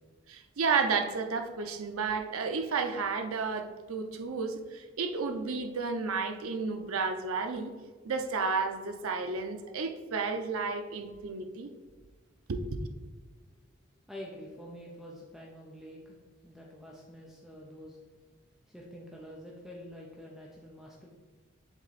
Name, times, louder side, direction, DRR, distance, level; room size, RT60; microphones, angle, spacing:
voice 1, 0.3-7.7 8.0-11.7 12.5-12.9, right 4 dB, 85° right, 6 dB, 0.6 m, -32 dB
voice 2, 14.1-16.2 16.4-18.0 18.7-21.1, equal, ahead, -3 dB, 0.6 m, -47 dB
7.2 x 3.7 x 4.1 m, 1.4 s
head